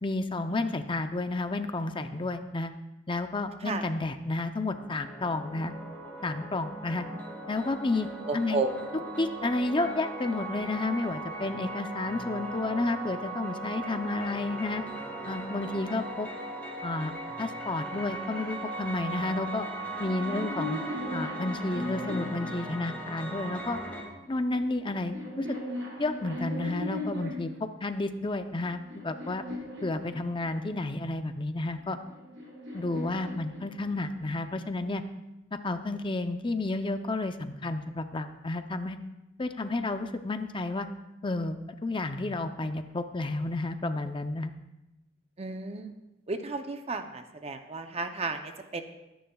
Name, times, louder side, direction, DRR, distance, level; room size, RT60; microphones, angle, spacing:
voice 1, 0.0-2.7 3.1-5.7 6.2-7.0 7.5-8.1 8.3-8.6 9.2-14.8 15.2-16.3 16.8-17.1 17.4-19.7 20.0-20.8 21.1-23.8 24.3-25.6 26.0-29.4 29.8-32.0 32.7-35.0 35.5-39.0 39.4-40.9 41.2-44.5, left 2 dB, 25° left, 8 dB, 0.6 m, -31 dB
sound 1, 4.7-24.0, right 2 dB, 10° left, 2.2 m, -38 dB
voice 2, 8.3-9.0 45.4-45.9 46.3-48.8, right 3 dB, 30° right, 7 dB, 0.6 m, -33 dB
sound 2, 19.9-23.3 24.2-27.6 28.3-30.7 31.8-34.2, left 1 dB, 65° right, 5.3 m, -38 dB
22.5 x 10.0 x 2.3 m, 0.96 s
head